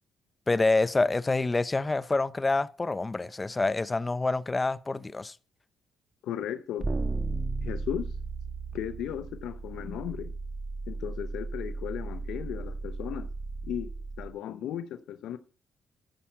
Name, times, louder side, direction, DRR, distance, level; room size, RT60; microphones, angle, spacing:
voice 1, 0.5-5.4, left 3 dB, 20° left, 0.5 m, -27 dB
voice 2, 6.2-6.9 7.6-8.1 8.7-10.3 10.9-13.3 13.6-13.9 14.2-15.4, left 10 dB, 85° left, 0.6 m, -35 dB
sound 1, 6.8-14.3, right 3 dB, 25° right, 1.3 m, -35 dB
13.0 x 7.2 x 4.5 m
cardioid pair, 90°, 0 cm